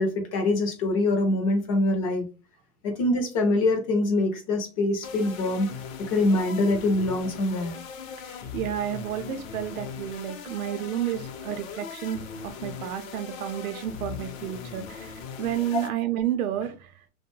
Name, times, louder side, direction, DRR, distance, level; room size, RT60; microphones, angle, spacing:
voice 1, 0.0-2.2 2.8-5.7 6.1-7.7, left 2 dB, 25° left, 4 dB, 0.4 m, -24 dB
sound 1, 5.0-15.9, left 6 dB, 65° left, 0.7 m, -39 dB
voice 2, 8.2-16.9, right 11 dB, 75° right, 10 dB, 0.6 m, -31 dB
2.5 x 2.1 x 3.0 m, 0.33 s
hypercardioid pair, 140°, 43 cm